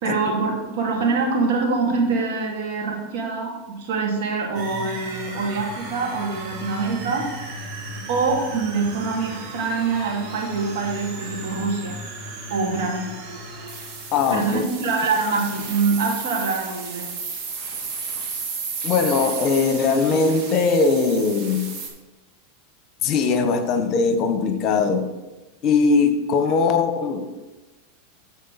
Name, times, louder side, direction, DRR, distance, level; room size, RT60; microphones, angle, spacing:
voice 1, 0.0-7.3 8.1-12.0 12.5-13.1 14.3-17.1, right 4 dB, 65° right, -1 dB, 2.6 m, -24 dB
sound 1, 4.5-21.9, right 4 dB, 50° right, 2.2 m, -34 dB
voice 2, 14.1-14.6 18.8-21.7 23.0-25.1 25.6-27.3, left 4 dB, 45° left, 8 dB, 1.0 m, -20 dB
13.0 x 4.3 x 4.2 m, 1.2 s
hypercardioid pair, 105°, 0 cm